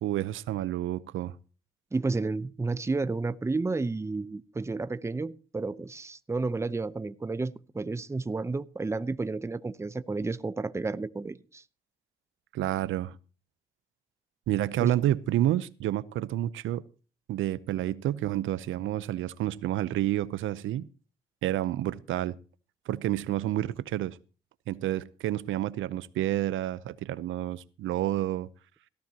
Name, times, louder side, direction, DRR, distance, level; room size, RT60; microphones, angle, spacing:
voice 1, 0.0-1.3 12.5-13.2 14.5-16.8 17.3-20.9 21.4-22.4 22.9-24.2 24.7-28.5, right 13 dB, 80° right, 0.7 m, -29 dB
voice 2, 1.9-11.6 14.8-14.9, right 3 dB, 15° right, 0.7 m, -31 dB
17.5 x 14.0 x 2.9 m
cardioid pair, 90°, 20 cm